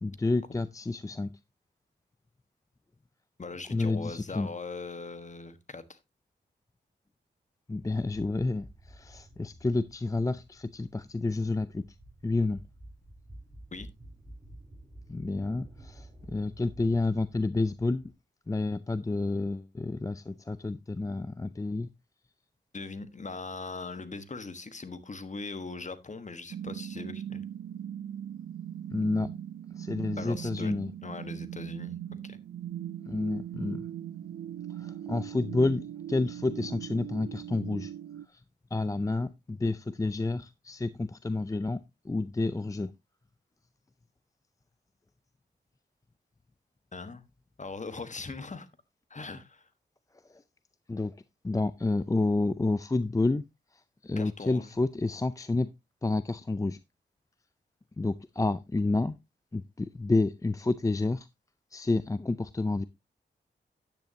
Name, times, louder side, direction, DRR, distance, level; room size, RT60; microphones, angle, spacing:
voice 1, 0.0-1.3 3.7-4.5 7.7-11.9 12.2-12.6 15.1-18.1 18.5-21.9 28.9-29.4 29.8-30.9 33.1-33.9 34.8-37.9 38.3-38.4 38.7-42.9 50.9-51.1 51.4-53.4 54.0-55.7 56.0-56.8 58.0-59.2 59.5-61.3 61.7-62.8, left 2 dB, 20° left, 0.5 m, -29 dB
voice 2, 3.4-6.0 13.7-13.9 22.7-27.5 30.2-32.4 46.9-47.2 47.6-48.7 49.1-49.7 54.2-54.7, left 3 dB, 40° left, 1.4 m, -40 dB
sound 1, 7.8-18.1, right 1 dB, 15° right, 4.3 m, -51 dB
sound 2, 26.5-38.3, right 10 dB, 80° right, 0.6 m, -40 dB
10.5 x 9.2 x 2.8 m
cardioid pair, 55°, 19 cm